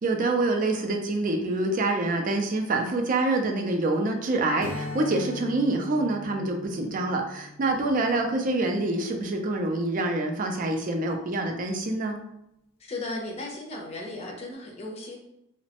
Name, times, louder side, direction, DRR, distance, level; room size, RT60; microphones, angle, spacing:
voice 1, 0.0-12.2, right 2 dB, 40° right, 3 dB, 0.4 m, -26 dB
Strum, 4.6-9.4, left 3 dB, 80° left, 0.4 m, -40 dB
voice 2, 12.8-15.2, left 2 dB, 30° left, -1 dB, 0.5 m, -36 dB
3.0 x 2.1 x 2.8 m, 0.84 s
head